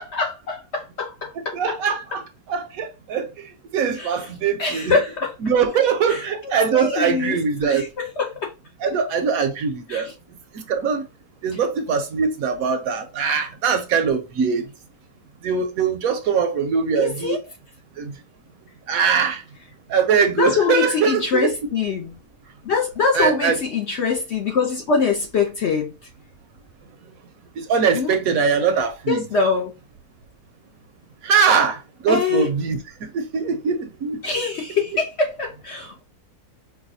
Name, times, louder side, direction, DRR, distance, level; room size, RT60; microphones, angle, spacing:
voice 1, 0.0-1.6 4.0-4.3 4.6-5.3 6.1-6.2 6.7-7.4 7.6-8.5 9.9-10.1 17.0-17.4 20.4-22.2 22.6-25.9 27.9-28.1 29.1-29.7 32.1-32.5 34.2-36.0, left 5 dB, 60° left, 0.7 m, -23 dB
voice 2, 1.5-2.2 2.5-5.0 5.4-7.8 8.8-10.1 10.5-11.1 11.4-14.6 15.4-17.4 18.0-18.1 18.9-19.4 19.9-21.5 23.1-23.6 27.6-29.2 31.2-34.2, right 6 dB, 70° right, 1.0 m, -22 dB
4.7 x 2.2 x 2.6 m
omnidirectional pair, 1.7 m